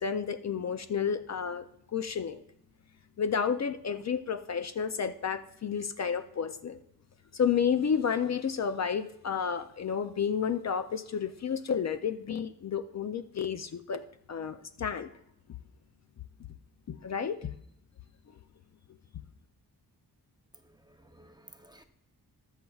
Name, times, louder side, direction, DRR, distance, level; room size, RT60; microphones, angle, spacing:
voice 1, 0.0-2.4 3.2-6.8 7.3-15.1 16.9-17.5, left 7 dB, 45° left, 0.5 m, -31 dB
voice 2, 20.5-21.8, right 1 dB, 10° right, 0.6 m, -56 dB
21.0 x 7.2 x 2.4 m
wide cardioid pair, 160°, 38 cm